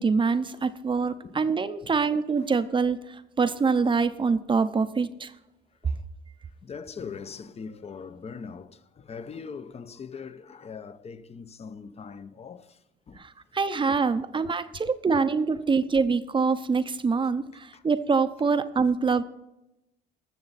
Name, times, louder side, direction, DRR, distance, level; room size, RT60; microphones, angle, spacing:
voice 1, 0.0-5.3 13.2-19.2, right 5 dB, 25° right, 0.7 m, -25 dB
voice 2, 1.2-1.5 1.8-2.1 2.4-2.5 5.8-6.0 6.6-12.8 13.1-13.2 17.1-17.3 17.7-17.8, left 5 dB, 35° left, 0.8 m, -41 dB
20.0 x 6.8 x 4.1 m
cardioid pair, 100°, 19 cm